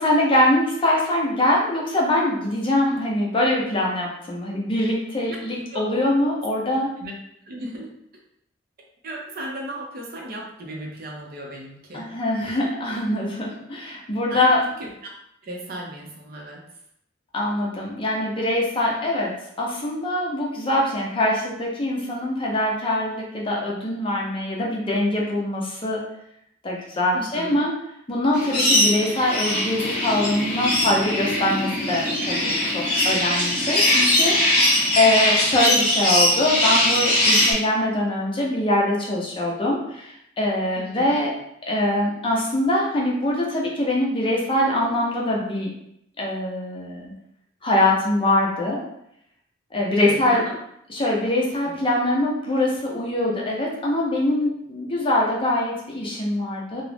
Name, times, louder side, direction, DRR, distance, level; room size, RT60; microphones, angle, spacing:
voice 1, 0.0-6.9 11.9-14.6 17.3-26.0 26.6-27.7 28.1-41.3 41.6-45.7 46.2-47.1 47.6-48.8 49.7-50.4 50.9-56.8, left 1 dB, 30° left, -2 dB, 0.5 m, -23 dB
voice 2, 7.5-7.9 9.0-12.1 14.3-14.9 15.4-16.6 27.1-27.6 33.6-33.8 40.8-41.2 50.0-50.6 51.7-51.8, right 1 dB, 50° right, -1 dB, 0.6 m, -35 dB
sound 1, 28.3-37.5, left 1 dB, 45° left, 0.9 m, -21 dB
2.4 x 2.0 x 3.2 m, 0.74 s
head